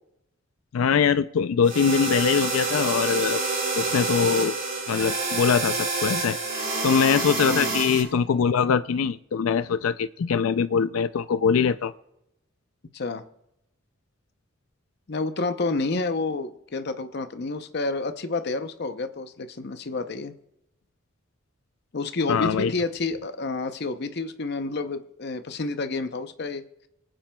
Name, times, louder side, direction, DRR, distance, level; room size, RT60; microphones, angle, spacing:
voice 1, 0.7-3.4 3.8-4.5 4.9-6.4 6.8-11.9 22.3-22.7, left 6 dB, 90° left, 13 dB, 0.4 m, -22 dB
sound 1, 1.6-8.0, right 3 dB, 45° right, 5.5 m, -27 dB
voice 2, 7.5-7.8 12.9-13.2 15.1-20.3 21.9-26.6, left 3 dB, 55° left, 9 dB, 0.7 m, -29 dB
25.5 x 8.8 x 2.3 m, 0.83 s
head